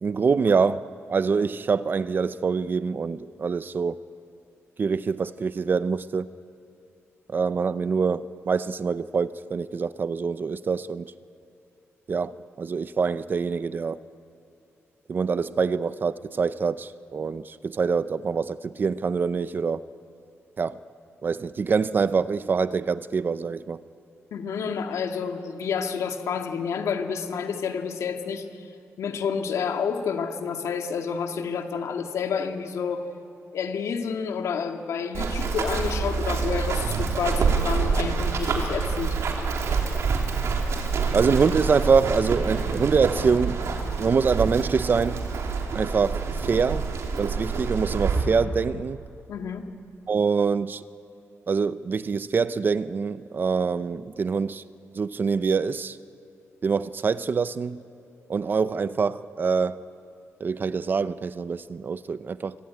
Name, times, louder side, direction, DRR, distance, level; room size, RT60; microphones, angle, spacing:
voice 1, 0.0-4.0 4.8-6.3 7.3-11.1 12.1-14.0 15.1-19.8 20.6-20.8 21.2-23.8 41.1-43.6 44.0-45.3 45.7-46.8 47.2-49.0 50.1-50.8 51.5-54.6 55.0-56.0 56.6-57.8 58.3-59.8 60.4-62.6, right 5 dB, 40° right, 0.6 m, -25 dB
voice 2, 24.3-28.5 29.0-33.1 33.5-39.2 49.3-49.6, left 6 dB, 85° left, 2.0 m, -29 dB
Run, 35.1-48.2, right 5 dB, 70° right, 3.4 m, -27 dB
25.0 x 24.5 x 9.5 m
wide cardioid pair, 135°, 5 cm